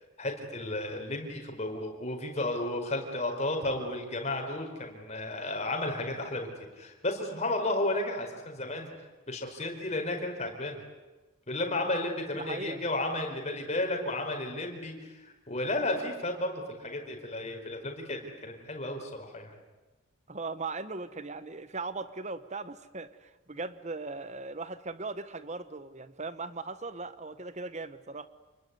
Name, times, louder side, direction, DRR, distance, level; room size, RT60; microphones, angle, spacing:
voice 1, 0.2-6.5 6.7-8.9 9.3-10.8 11.5-19.6, left 2 dB, 30° left, 3 dB, 4.6 m, -33 dB
voice 2, 12.3-12.8 20.3-28.3, right 3 dB, 30° right, 13 dB, 1.2 m, -38 dB
29.0 x 21.5 x 9.6 m, 1.1 s
head